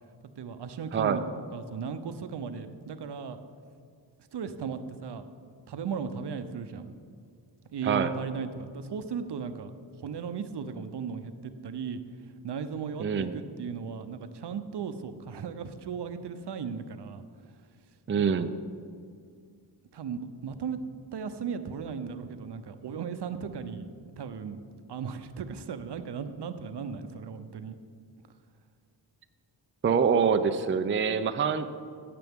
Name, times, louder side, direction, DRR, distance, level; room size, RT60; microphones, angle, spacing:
voice 1, 0.4-1.2 1.5-3.4 4.3-5.2 5.7-6.9 7.7-9.7 10.0-12.0 12.4-17.2 18.1-18.5 19.9-20.8 21.1-23.9 24.2-24.6 24.9-27.8, right 6 dB, 65° right, 10 dB, 0.7 m, -36 dB
voice 2, 0.9-1.2 7.8-8.1 13.0-13.3 18.1-18.5 29.8-31.7, right 6 dB, 30° right, 9 dB, 0.4 m, -25 dB
15.5 x 6.8 x 3.6 m, 2.2 s
wide cardioid pair, 80°, 43 cm